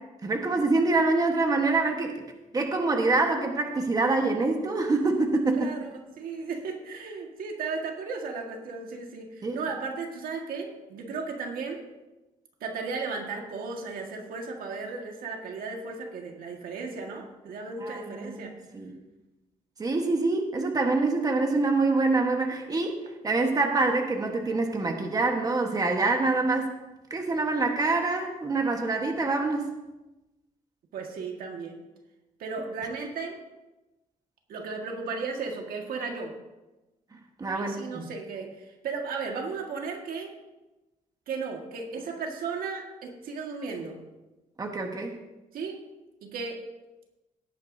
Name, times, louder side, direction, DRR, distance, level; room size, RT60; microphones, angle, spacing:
voice 1, 0.2-2.2 2.5-5.7 9.4-9.6 17.8-19.0 19.8-23.0 23.2-26.7 27.1-29.7 37.4-38.1 44.6-45.2, right 3 dB, 25° right, 3 dB, 1.3 m, -25 dB
voice 2, 5.5-11.8 12.6-18.5 30.9-31.8 32.4-33.4 34.5-36.3 37.5-40.4 41.3-44.0 45.5-45.8 46.2-46.6, right 4 dB, 85° right, 2 dB, 1.8 m, -35 dB
17.5 x 9.1 x 2.7 m, 1.0 s
cardioid pair, 130°, 15 cm